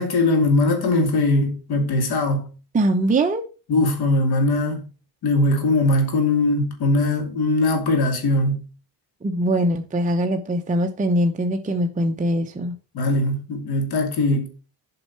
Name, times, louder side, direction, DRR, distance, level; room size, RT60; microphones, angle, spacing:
voice 1, 0.0-2.4 3.7-4.8 5.2-8.6 12.9-14.5, left 2 dB, 65° left, 2.7 m, -20 dB
voice 2, 2.7-3.4 9.2-12.8, right 1 dB, 20° right, 0.8 m, -22 dB
7.8 x 5.5 x 5.9 m
cardioid pair, 135°, 40 cm